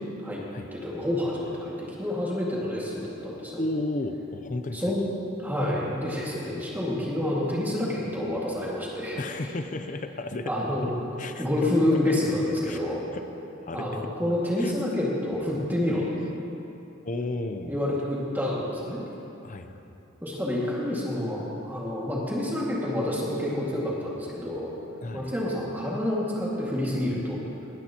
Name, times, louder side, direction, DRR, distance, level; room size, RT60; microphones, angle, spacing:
voice 1, 0.7-3.6 4.7-5.0 5.4-9.2 10.5-10.9 11.4-13.0 13.7-16.0 17.7-19.0 20.2-24.7 25.1-27.4, left 1 dB, 10° right, -5 dB, 2.0 m, -28 dB
voice 2, 3.6-5.1 9.2-10.5 10.8-10.9 11.2-11.5 12.6-12.8 13.1-13.2 13.6-14.1 14.6-14.7 17.0-17.7 19.4-19.7 25.0-25.3, left 2 dB, 40° left, 8 dB, 0.6 m, -33 dB
20.0 x 10.5 x 2.9 m, 2.9 s
head